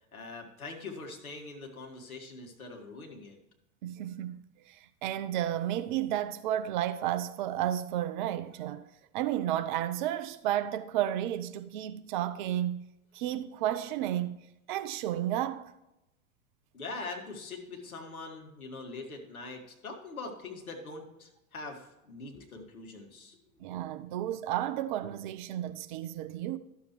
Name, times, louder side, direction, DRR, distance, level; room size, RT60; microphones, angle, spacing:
voice 1, 0.1-3.4 16.7-23.4, left 3 dB, 75° left, 1.8 m, -43 dB
voice 2, 3.8-8.9 9.1-14.4 14.7-15.7 23.6-26.6, right 12 dB, 35° right, 0.4 m, -32 dB
12.0 x 7.0 x 3.0 m
figure-of-eight pair, 85°, 43 cm